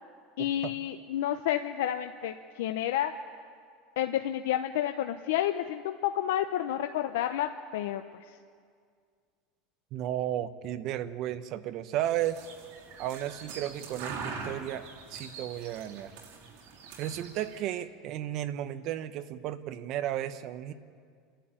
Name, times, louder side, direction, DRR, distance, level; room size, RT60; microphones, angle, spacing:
voice 1, 0.4-3.1 4.0-8.0, left 12 dB, 85° left, 7 dB, 0.8 m, -30 dB
voice 2, 9.9-12.4 13.0-16.2 17.0-20.7, right 12 dB, 45° right, 11 dB, 1.0 m, -34 dB
sound 1, 12.0-17.6, right 4 dB, 65° right, 3.8 m, -43 dB
29.5 x 11.5 x 8.9 m, 2.1 s
supercardioid pair, 150°, 0 cm